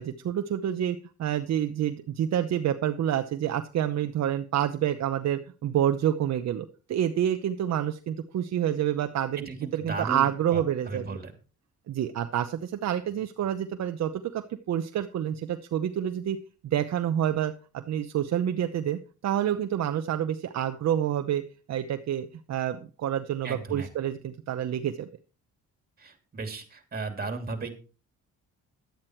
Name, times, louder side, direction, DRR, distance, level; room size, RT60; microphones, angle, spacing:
voice 1, 0.0-11.2 11.9-16.4 16.6-21.4 21.7-25.1, right 10 dB, 60° right, 7 dB, 0.8 m, -28 dB
voice 2, 9.5-11.3 23.4-23.9 26.0-27.7, right 3 dB, 30° right, 6 dB, 2.9 m, -35 dB
11.5 x 8.8 x 4.5 m, 0.35 s
cardioid pair, 90°, 30 cm